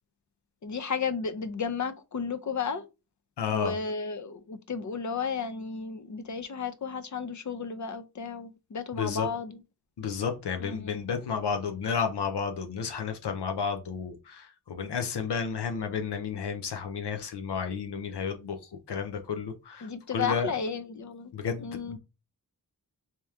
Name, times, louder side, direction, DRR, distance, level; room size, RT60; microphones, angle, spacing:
voice 1, 0.6-2.9 3.5-9.6 10.6-11.0 19.8-21.3 21.6-22.0, left 5 dB, 50° left, 0.6 m, -33 dB
voice 2, 3.4-3.8 9.0-9.3 10.0-20.5 21.3-22.0, left 6 dB, 90° left, 0.6 m, -32 dB
3.3 x 2.9 x 3.5 m
wide cardioid pair, 60°, 39 cm